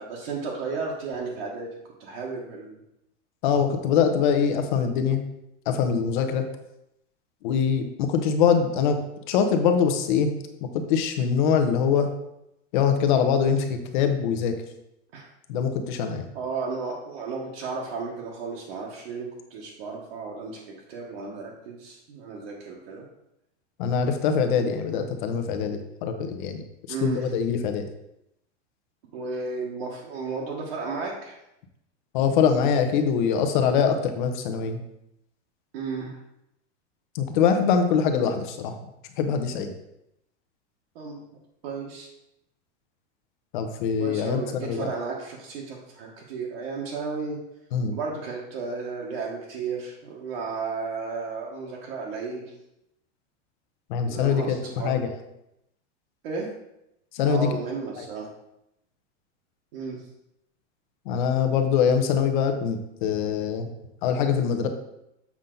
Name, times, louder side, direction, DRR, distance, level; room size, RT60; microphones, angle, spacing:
voice 1, 0.0-1.7 2.0-2.8 15.1-15.3 16.3-20.6 20.9-23.0 26.9-27.2 29.1-31.4 35.7-36.2 40.9-41.2 41.6-42.1 44.0-47.4 47.9-52.5 54.1-55.0 56.2-56.5 57.2-58.3 59.7-60.0, right 4 dB, 55° right, -3 dB, 1.4 m, -33 dB
voice 2, 3.4-5.2 5.7-6.4 7.4-9.0 9.3-10.3 10.6-12.1 12.7-14.5 15.5-16.3 23.8-26.6 27.0-27.9 32.1-34.8 37.1-38.8 39.2-39.7 43.5-44.9 47.7-48.0 53.9-55.1 57.1-57.5 58.0-58.1 61.0-63.7 64.0-64.7, left 7 dB, 40° left, 7 dB, 0.8 m, -23 dB
7.3 x 5.5 x 3.8 m, 0.84 s
supercardioid pair, 180°, 35 cm